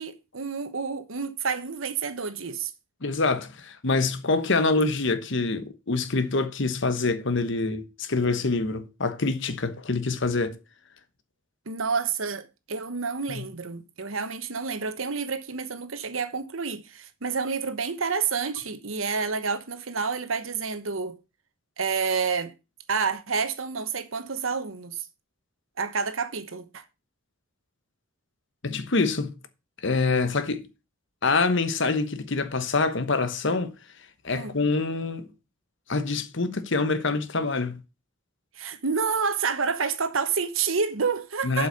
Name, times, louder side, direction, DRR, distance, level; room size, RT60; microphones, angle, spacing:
voice 1, 0.0-2.7 11.7-21.2 21.8-22.5 22.9-25.1 25.8-26.8 34.3-34.5 38.6-41.7, right 5 dB, 75° right, 1.1 m, -29 dB
voice 2, 3.0-10.6 13.3-13.4 28.6-29.4 29.8-30.7 31.2-33.7 34.2-35.3 35.9-37.8 41.4-41.7, left 3 dB, 60° left, 1.1 m, -25 dB
7.9 x 5.7 x 6.7 m
head